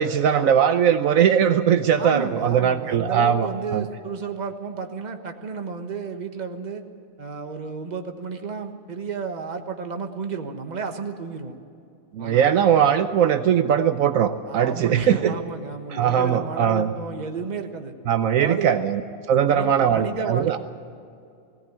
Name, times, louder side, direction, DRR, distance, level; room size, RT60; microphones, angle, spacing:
voice 1, 0.0-3.9 12.1-15.3 15.9-16.9 18.1-19.0 19.3-20.6, right 8 dB, 70° right, 9 dB, 1.1 m, -20 dB
voice 2, 2.0-6.8 7.2-11.6 12.2-12.6 14.5-17.9 18.4-18.8 19.5-20.6, right 5 dB, 35° right, 5 dB, 1.2 m, -32 dB
19.0 x 16.5 x 9.1 m, 2.4 s
omnidirectional pair, 1.5 m